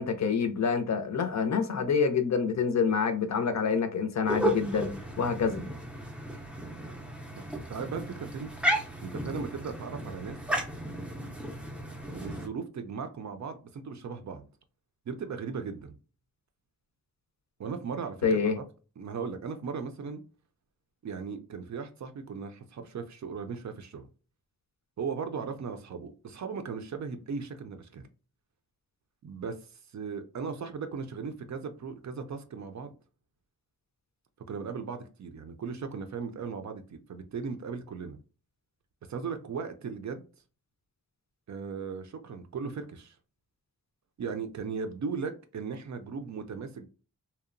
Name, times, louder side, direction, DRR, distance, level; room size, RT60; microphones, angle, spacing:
voice 1, 0.0-5.6 18.2-18.6, left 5 dB, 55° left, 0.5 m, -27 dB
sound 1, 4.2-12.5, equal, 5° right, 0.4 m, -34 dB
voice 2, 7.4-8.5 9.0-10.4 12.1-14.5 15.1-15.9 17.6-18.6 19.0-20.2 21.0-24.1 25.0-28.1 29.2-29.6 29.9-32.9 34.5-38.2 39.1-40.2 41.5-43.2 44.2-46.9, right 5 dB, 60° right, 0.4 m, -37 dB
2.8 x 2.0 x 2.5 m
wide cardioid pair, 110°, 33 cm